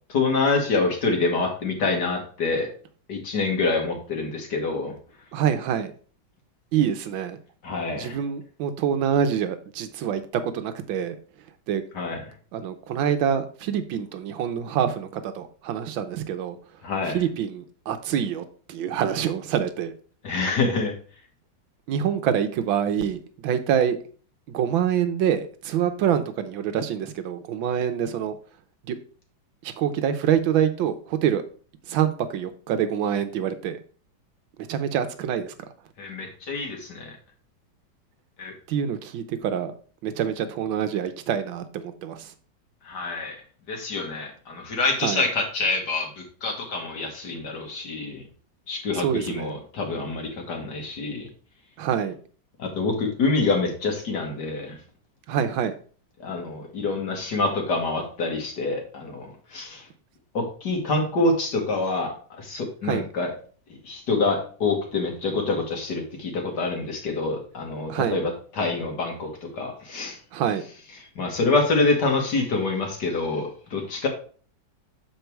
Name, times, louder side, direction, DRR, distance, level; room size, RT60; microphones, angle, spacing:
voice 1, 0.1-2.7 3.1-4.9 7.6-8.2 11.9-12.2 16.8-17.2 20.2-20.9 36.0-37.1 38.4-38.5 42.8-43.4 43.7-48.2 48.7-51.3 52.6-54.8 56.2-59.8 60.3-63.3 63.8-69.3 69.5-70.2 71.2-74.1, left 3 dB, 60° left, 2 dB, 2.2 m, -26 dB
voice 2, 5.3-5.9 6.7-7.4 8.0-11.2 11.7-11.8 12.5-16.6 17.0-19.9 21.9-24.0 24.5-28.4 28.9-29.0 29.6-31.4 31.9-33.8 34.6-35.5 38.7-39.7 40.0-42.3 45.0-45.2 48.9-49.5 51.8-52.2 55.3-55.7 62.8-63.1 67.9-68.2 70.3-70.6, right 8 dB, 85° right, 9 dB, 1.6 m, -26 dB
6.8 x 4.7 x 4.5 m, 0.41 s
omnidirectional pair, 2.1 m